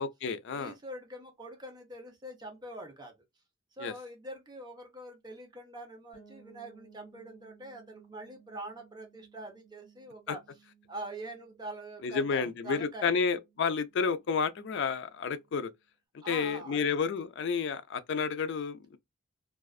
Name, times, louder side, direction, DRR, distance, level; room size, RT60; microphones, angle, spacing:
voice 1, 0.0-0.7 3.8-3.9 10.3-10.4 12.0-15.7 16.3-19.0, left 5 dB, 60° left, 0.4 m, -31 dB
voice 2, 0.5-3.2 3.7-10.4 10.9-13.1 16.2-16.9, right 1 dB, 20° right, 0.6 m, -44 dB
sound 1, 6.1-15.8, right 6 dB, 20° left, 1.4 m, -62 dB
2.3 x 2.3 x 2.3 m
head